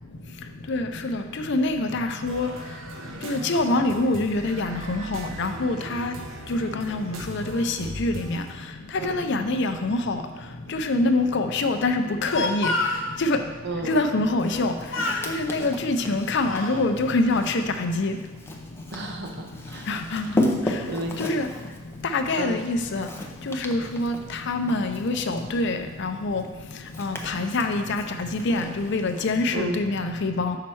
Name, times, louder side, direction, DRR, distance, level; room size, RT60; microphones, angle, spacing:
voice 1, 0.7-1.2 1.5-2.5 3.2-6.1 6.5-8.4 9.0-10.2 10.7-12.7 13.2-13.4 13.9-14.7 15.3-18.1 19.9-20.2 21.2-21.5 22.1-23.1 23.5-24.1 24.5-26.4 27.0-30.6, left 2 dB, 60° left, 7 dB, 0.5 m, -25 dB
sound 1, 2.2-8.5, right 2 dB, 85° right, 0.8 m, -39 dB
voice 2, 9.0-9.5 13.6-14.1 18.9-19.9 20.2-20.4 20.9-21.4 22.4-22.6 29.5-29.8, right 1 dB, 60° right, 2 dB, 0.9 m, -33 dB
Speech, 12.0-13.1 14.4-14.7 14.9-15.3 16.0-16.8, left 2 dB, 90° left, 0.9 m, -28 dB
Walk footsteps, 14.4-29.4, left 1 dB, 10° left, 0.6 m, -35 dB
5.7 x 4.3 x 6.2 m, 1.3 s
head